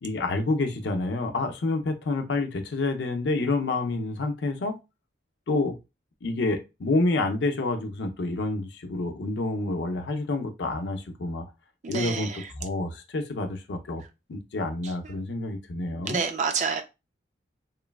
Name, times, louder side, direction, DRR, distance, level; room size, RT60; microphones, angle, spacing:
voice 1, 0.0-4.8 5.5-5.8 6.2-11.5 11.9-12.3 12.6-14.0 14.3-16.2, left 2 dB, 70° left, 0.5 m, -28 dB
voice 2, 11.8-12.5 14.8-15.3 16.0-16.8, right 5 dB, 40° right, 0.3 m, -29 dB
3.0 x 2.2 x 2.3 m
head